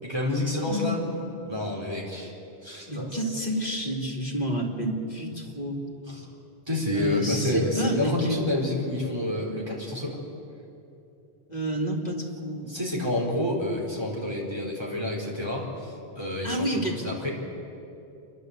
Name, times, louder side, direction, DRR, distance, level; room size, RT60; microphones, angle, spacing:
voice 1, 0.0-1.0 1.5-2.3 2.6-3.2 6.1-6.3 6.7-10.2 12.7-17.3, left 1 dB, 25° right, -3 dB, 4.1 m, -29 dB
voice 2, 0.7-1.0 2.9-5.8 6.9-8.5 11.5-12.7 16.4-17.0, equal, 40° left, 0 dB, 2.7 m, -29 dB
28.0 x 11.5 x 8.1 m, 2.8 s
omnidirectional pair, 1.1 m